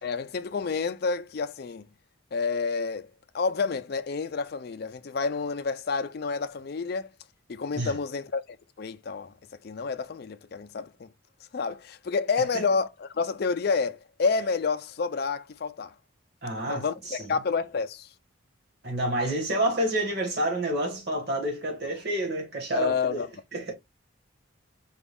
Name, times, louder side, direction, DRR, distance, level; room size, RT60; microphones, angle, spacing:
voice 1, 0.0-1.9 2.3-3.1 3.3-7.1 7.5-9.3 9.6-11.1 11.5-15.9 16.7-18.1 22.7-23.3, left 4 dB, 50° left, 0.4 m, -29 dB
voice 2, 16.4-17.3 18.8-23.3 23.5-23.7, right 1 dB, 50° right, 1.5 m, -29 dB
5.0 x 2.3 x 3.4 m
head